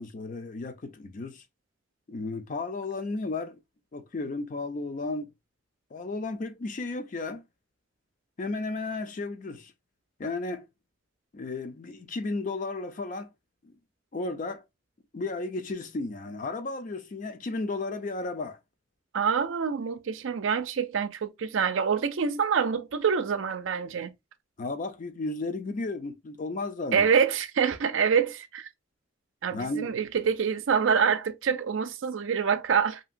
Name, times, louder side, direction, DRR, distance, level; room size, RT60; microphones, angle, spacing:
voice 1, 0.0-1.4 2.1-3.6 3.9-5.3 5.9-7.4 8.4-9.7 10.2-10.7 11.3-13.3 13.6-13.7 14.1-14.6 15.1-18.6 24.6-27.1 29.5-29.9, left 3 dB, 40° left, 0.4 m, -34 dB
voice 2, 19.1-24.1 26.9-28.7 29.4-33.0, right 6 dB, 75° right, 0.4 m, -26 dB
2.8 x 2.8 x 2.4 m
head